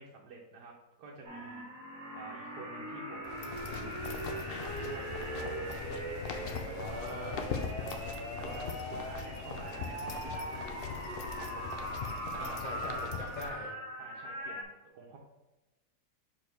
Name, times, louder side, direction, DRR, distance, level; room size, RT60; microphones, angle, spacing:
voice 1, 0.0-1.7 2.1-4.0 4.6-7.0 7.8-8.0 8.4-10.7 11.3-12.7 13.4-13.5 14.0-15.2, right 3 dB, 85° right, -2 dB, 1.4 m, -49 dB
sound 1, 1.2-14.6, right 1 dB, 60° right, 1.6 m, -41 dB
sound 2, 2.9-7.8, right 2 dB, 45° right, 1.5 m, -61 dB
sound 3, 3.2-13.5, left 5 dB, 80° left, 0.5 m, -41 dB
voice 2, 6.7-7.5 12.3-13.7, left 1 dB, 40° left, -4 dB, 0.7 m, -42 dB
6.2 x 4.6 x 3.4 m, 1.1 s
omnidirectional pair, 1.7 m